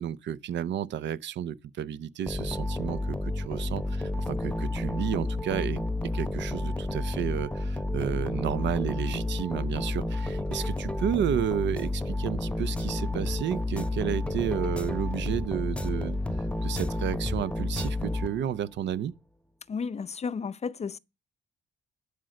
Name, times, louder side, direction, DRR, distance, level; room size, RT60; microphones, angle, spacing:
voice 1, 0.0-19.1, right 9 dB, 65° right, 0.6 m, -32 dB
sound 1, 2.3-18.7, left 2 dB, 5° left, 0.9 m, -31 dB
voice 2, 19.7-21.0, left 5 dB, 35° left, 0.6 m, -33 dB
12.0 x 5.2 x 7.6 m
cardioid pair, 90°, 20 cm